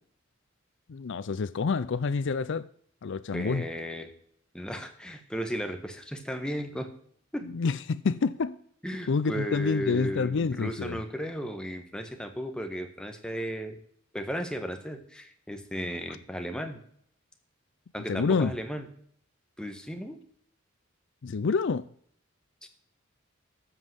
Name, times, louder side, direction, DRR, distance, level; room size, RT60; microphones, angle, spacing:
voice 1, 0.9-2.7 3.0-3.6 7.4-8.6 9.1-11.0 18.1-18.5 21.2-21.9, left 4 dB, 65° left, 0.5 m, -28 dB
voice 2, 3.3-4.1 4.5-6.9 7.3-7.5 8.8-13.8 14.1-16.8 17.9-18.8 19.6-20.2 22.6-22.7, equal, 5° left, 1.4 m, -35 dB
13.5 x 5.5 x 7.8 m
head